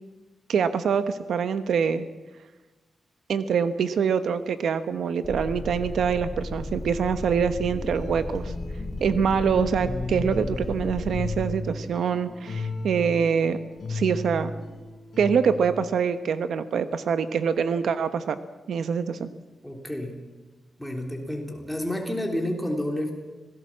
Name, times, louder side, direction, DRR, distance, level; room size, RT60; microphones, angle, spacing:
voice 1, 0.5-2.0 3.3-8.5 9.0-13.6 13.9-14.5 15.2-18.4 18.7-19.3, right 6 dB, 75° right, 11 dB, 1.1 m, -25 dB
sound 1, 5.2-11.4, left 2 dB, 25° left, 5.8 m, -34 dB
sound 2, 7.5-15.8, left 2 dB, 50° left, 3.9 m, -35 dB
voice 2, 19.6-20.1 20.8-23.1, left 1 dB, ahead, 1 dB, 3.4 m, -30 dB
26.0 x 18.0 x 7.4 m, 1.2 s
wide cardioid pair, 180°, 0 cm